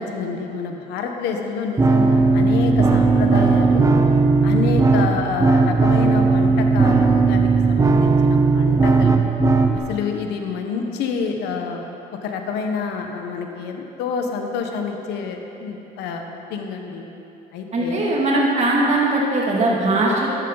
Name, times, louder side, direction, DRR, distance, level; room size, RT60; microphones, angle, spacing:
voice 1, 0.0-3.9 4.4-9.3 9.7-11.8 12.2-17.0 17.5-18.0, left 5 dB, 85° left, 3 dB, 1.2 m, -28 dB
sound 1, 1.8-9.8, right 4 dB, 20° right, 0.8 m, -16 dB
voice 2, 17.7-20.3, right 2 dB, 40° right, -3 dB, 2.5 m, -20 dB
12.5 x 10.5 x 4.0 m, 3.0 s
cardioid pair, 110°, 17 cm